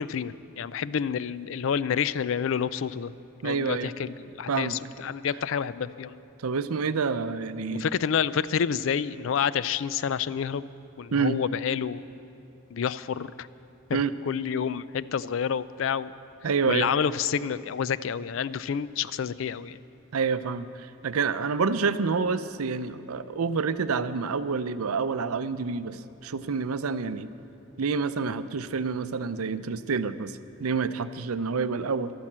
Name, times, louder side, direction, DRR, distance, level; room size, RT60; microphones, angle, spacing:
voice 1, 0.0-3.1 3.4-6.2 7.7-10.7 11.0-12.0 12.7-13.5 13.9-16.1 16.7-19.8, left 7 dB, 65° left, 17 dB, 0.4 m, -29 dB
voice 2, 3.4-3.9 4.5-4.8 6.4-7.9 11.1-11.4 13.9-14.1 16.4-16.9 20.1-27.3 27.8-32.1, right 5 dB, 85° right, 13 dB, 0.6 m, -28 dB
13.5 x 12.0 x 7.4 m, 2.8 s
head